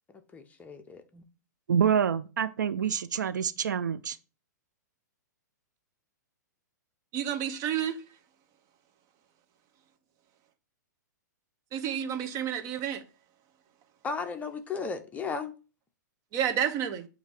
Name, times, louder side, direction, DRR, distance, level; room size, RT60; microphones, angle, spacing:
voice 1, 0.3-1.2 14.0-15.5, left 5 dB, 15° left, 0.8 m, -35 dB
voice 2, 1.7-4.2, right 8 dB, 75° right, 0.4 m, -27 dB
voice 3, 7.1-8.0 11.7-13.0 16.3-17.1, right 9 dB, 35° right, 0.9 m, -30 dB
8.1 x 2.8 x 4.6 m
hypercardioid pair, 115°, 10 cm